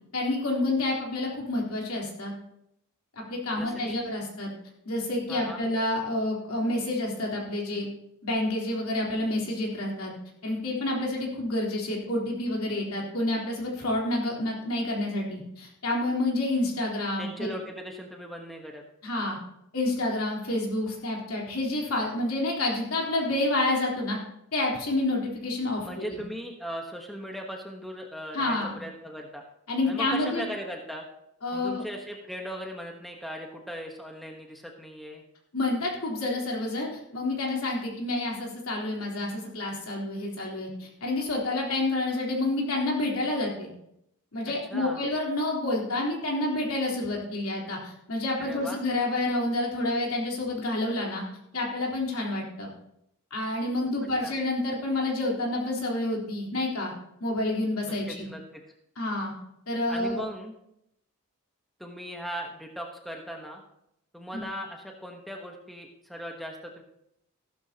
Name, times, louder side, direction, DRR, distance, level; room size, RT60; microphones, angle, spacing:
voice 1, 0.1-2.3 3.2-4.5 4.9-7.9 8.2-10.1 10.4-17.5 19.0-19.4 19.7-24.2 24.5-26.2 28.3-28.8 29.7-30.5 31.4-31.8 35.5-43.7 44.3-51.2 51.5-52.7 53.3-56.9 57.2-58.3 59.0-59.3 59.7-60.2 64.3-64.4, left 2 dB, 65° left, -2 dB, 3.6 m, -29 dB
voice 2, 3.5-4.0 5.3-5.6 17.2-18.8 25.8-29.4 29.8-31.1 31.5-35.2 44.4-45.0 48.4-48.8 54.2-54.4 57.9-58.6 59.9-60.5 61.8-63.6 64.1-66.8, equal, ahead, 1 dB, 1.1 m, -38 dB
15.0 x 12.5 x 2.9 m, 0.78 s
head